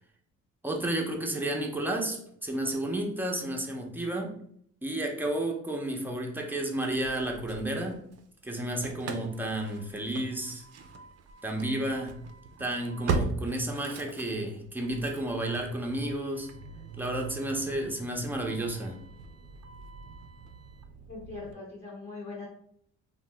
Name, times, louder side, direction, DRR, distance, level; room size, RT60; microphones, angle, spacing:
voice 1, 0.6-4.3 4.8-8.0 8.4-10.6 11.4-12.1 12.6-16.5 17.0-19.0, right 1 dB, 5° right, 1 dB, 0.6 m, -32 dB
Engine starting / Slam, 6.8-8.2 8.5-21.5, right 4 dB, 55° right, 0.4 m, -39 dB
voice 2, 21.1-22.5, left 3 dB, 35° left, -3 dB, 0.8 m, -41 dB
2.7 x 2.1 x 3.3 m, 0.67 s
cardioid pair, 90°, 30 cm